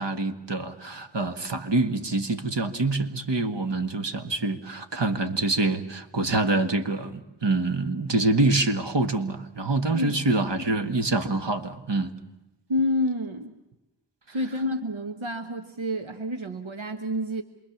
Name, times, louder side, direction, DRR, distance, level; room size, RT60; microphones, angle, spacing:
voice 1, 0.0-12.1, right 2 dB, 60° right, 7 dB, 1.8 m, -26 dB
voice 2, 12.7-13.5 14.3-17.4, left 1 dB, 80° right, 6 dB, 1.4 m, -28 dB
28.0 x 22.5 x 7.2 m, 0.97 s
wide cardioid pair, 50°, 47 cm